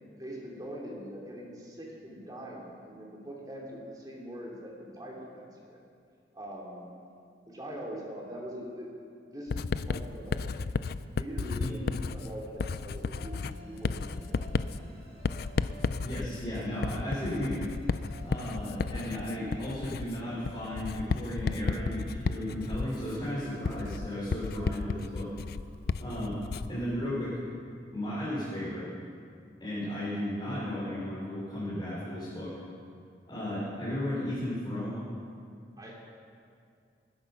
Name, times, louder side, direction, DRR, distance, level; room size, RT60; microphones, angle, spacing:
voice 1, 0.2-5.8 6.3-6.9 7.4-8.9 9.2-10.7 11.1-14.7 18.8-19.0 35.8-35.9, equal, 20° right, -3 dB, 2.9 m, -43 dB
Writing, 9.5-26.8, left 4 dB, 55° left, 0.4 m, -33 dB
sound 1, 13.1-23.4, right 1 dB, 80° right, 5.2 m, -52 dB
voice 2, 16.0-17.6 18.2-25.3 26.0-26.4 26.7-27.4 27.9-28.9 29.6-32.5 33.2-35.0, left 1 dB, 25° left, -10 dB, 4.1 m, -34 dB
20.0 x 10.5 x 6.0 m, 2.3 s
head